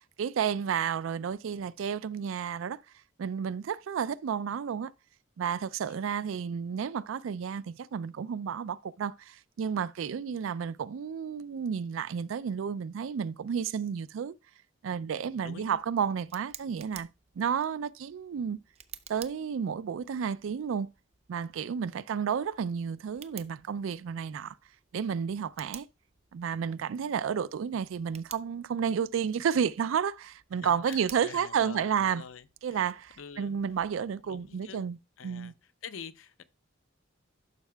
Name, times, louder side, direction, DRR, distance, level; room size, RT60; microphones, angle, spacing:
voice 1, 0.0-2.8 3.2-4.9 5.4-14.3 14.8-17.1 17.4-18.6 19.1-20.9 21.3-24.6 24.9-25.9 26.3-32.2 32.6-35.0 35.2-35.5, right 7 dB, 85° right, 0.4 m, -31 dB
voice 2, 15.1-15.8 30.5-32.8 33.2-33.6 34.2-34.8 35.2-35.5 35.8-36.4, left 7 dB, 80° left, 0.5 m, -46 dB
Tick, 15.3-35.0, right 9 dB, 35° right, 0.5 m, -54 dB
11.5 x 5.7 x 2.2 m
head